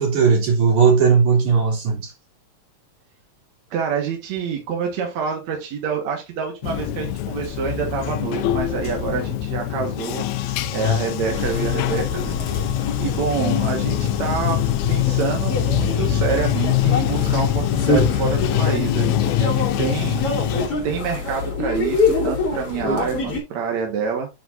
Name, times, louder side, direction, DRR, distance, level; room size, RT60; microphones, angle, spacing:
voice 1, 0.0-2.1, right 5 dB, 90° right, 4.5 m, -17 dB
voice 2, 3.7-12.4 13.0-14.6 14.9-19.5 19.8-20.4 20.8-24.3, right 6 dB, 70° right, 2.8 m, -27 dB
Bathtub (filling or washing), 6.6-20.7, left 11 dB, 80° left, 2.0 m, -23 dB
sound 1, 11.3-23.4, left 3 dB, 50° left, 3.5 m, -26 dB
9.5 x 6.2 x 2.6 m
omnidirectional pair, 3.3 m